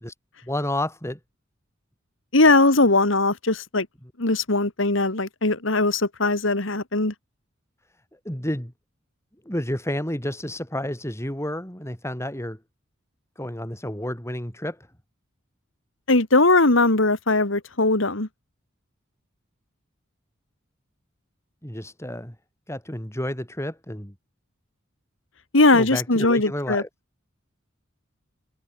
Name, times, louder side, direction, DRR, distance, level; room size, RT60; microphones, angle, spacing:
voice 1, 0.4-1.2 8.2-8.7 9.4-12.6 13.4-14.8 21.6-22.3 22.7-24.1 25.7-26.9, left 1 dB, 15° left, 4.9 m, -30 dB
voice 2, 2.3-3.9 4.2-7.1 16.1-18.3 25.5-26.8, left 2 dB, 65° left, 2.4 m, -20 dB
head